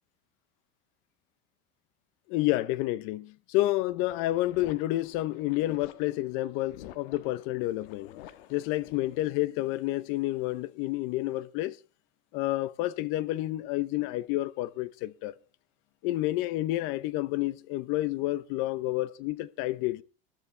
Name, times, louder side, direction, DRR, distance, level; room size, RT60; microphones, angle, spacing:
voice 1, 2.3-8.1 8.5-11.8 12.3-15.3 16.0-20.0, left 17 dB, 45° left, 0.7 m, -29 dB
sound 1, 4.0-9.2, left 12 dB, 75° left, 1.4 m, -50 dB
20.5 x 11.5 x 3.3 m
cardioid pair, 180°, 30 cm